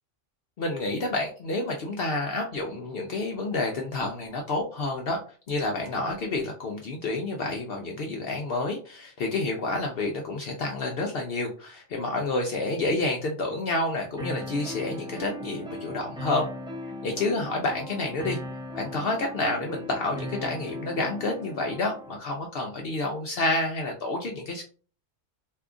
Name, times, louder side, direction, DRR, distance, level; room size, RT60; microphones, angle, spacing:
voice 1, 0.6-5.2 5.5-16.5 17.0-18.4 18.7-24.6, left 2 dB, 60° left, 2 dB, 0.7 m, -29 dB
sound 1, 14.2-22.2, left 1 dB, 5° right, 0.6 m, -38 dB
2.7 x 2.4 x 3.6 m, 0.40 s
omnidirectional pair, 1.2 m